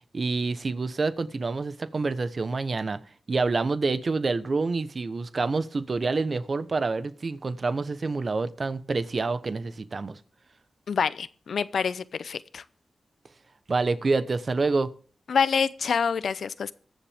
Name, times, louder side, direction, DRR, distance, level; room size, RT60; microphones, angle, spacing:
voice 1, 0.0-3.0 3.3-10.2 13.7-14.9, right 3 dB, 55° right, 1.0 m, -27 dB
voice 2, 10.9-12.6 15.3-16.7, left 6 dB, 80° left, 0.6 m, -26 dB
22.0 x 7.4 x 3.5 m
cardioid pair, 50°, 0 cm